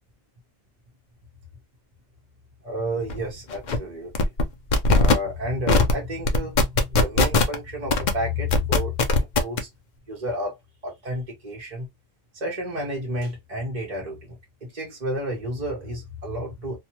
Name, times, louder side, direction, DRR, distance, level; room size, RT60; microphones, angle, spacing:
voice 1, 2.6-4.3 5.0-8.9 9.4-9.7 10.1-10.5 10.8-11.9 12.3-14.4 14.6-16.8, equal, 35° right, 0.8 m, -31 dB
sound 1, 3.1-3.2 3.5-3.8 4.1-4.4 4.7-5.1 5.7-5.9 6.2-7.5 7.9-8.1 8.5-9.6, left 3 dB, 60° left, 0.5 m, -18 dB
2.7 x 2.3 x 2.8 m
omnidirectional pair, 1.4 m